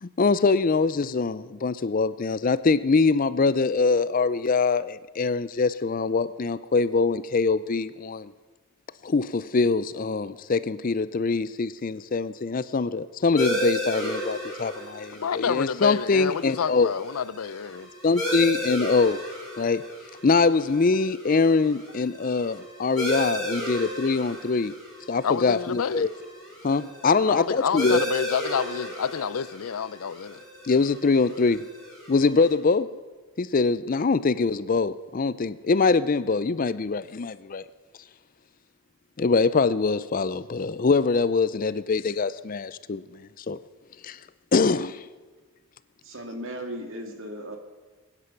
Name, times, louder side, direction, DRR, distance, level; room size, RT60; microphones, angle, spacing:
voice 1, 0.0-8.3 9.0-16.9 18.0-19.2 19.6-19.8 20.2-24.7 25.1-26.1 26.6-28.0 30.6-31.7 32.1-32.9 33.4-37.6 39.2-43.6 44.0-44.2 44.5-45.0, left 4 dB, 40° left, 0.4 m, -23 dB
sound 1, 13.4-32.5, equal, 5° left, 5.4 m, -34 dB
voice 2, 15.1-17.9 22.1-22.2 25.2-26.1 27.3-30.4, left 7 dB, 90° left, 0.5 m, -29 dB
voice 3, 46.0-47.6, equal, 65° right, 2.1 m, -36 dB
22.5 x 9.8 x 5.9 m
head